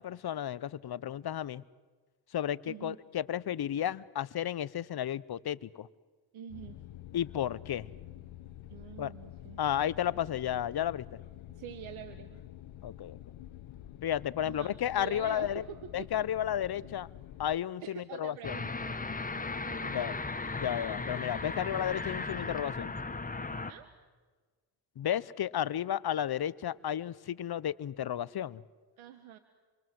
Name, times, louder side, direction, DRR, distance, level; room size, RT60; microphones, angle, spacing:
voice 1, 0.0-1.6 2.3-5.9 7.1-7.9 9.0-9.1 9.6-11.0 12.8-13.2 14.0-15.6 15.9-17.1 17.4-18.6 19.9-20.1 20.6-22.9 25.0-28.6, left 10 dB, 50° left, 19 dB, 0.9 m, -33 dB
voice 2, 2.6-3.0 6.3-6.8 8.7-9.6 11.5-12.4 14.4-16.2 17.8-19.0 19.6-20.2 23.7-23.9 29.0-29.4, right 9 dB, 80° right, 10 dB, 1.6 m, -46 dB
sound 1, 6.5-17.6, left 13 dB, 70° left, 1.3 m, -48 dB
sound 2, 18.4-23.7, left 3 dB, 15° left, 1.6 m, -36 dB
27.5 x 24.0 x 7.8 m, 1.4 s
cardioid pair, 70°, 48 cm